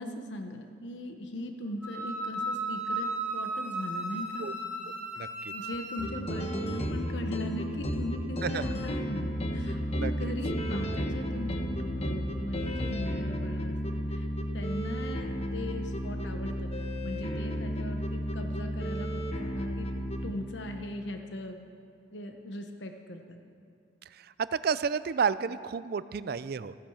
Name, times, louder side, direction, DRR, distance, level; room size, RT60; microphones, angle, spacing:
voice 1, 0.0-4.5 5.5-14.3 14.5-19.9 20.2-21.6 22.1-23.4, left 1 dB, 80° left, 5 dB, 1.0 m, -39 dB
Wind instrument woodwind instrument, 1.8-6.1, right 2 dB, 10° right, 2.6 m, -35 dB
voice 2, 5.2-5.5 8.4-8.6 10.0-10.1 24.1-26.7, right 6 dB, 55° right, 15 dB, 0.4 m, -31 dB
sound 1, 6.0-20.3, equal, 35° left, 1.1 m, -33 dB
14.5 x 10.5 x 7.1 m, 2.4 s
head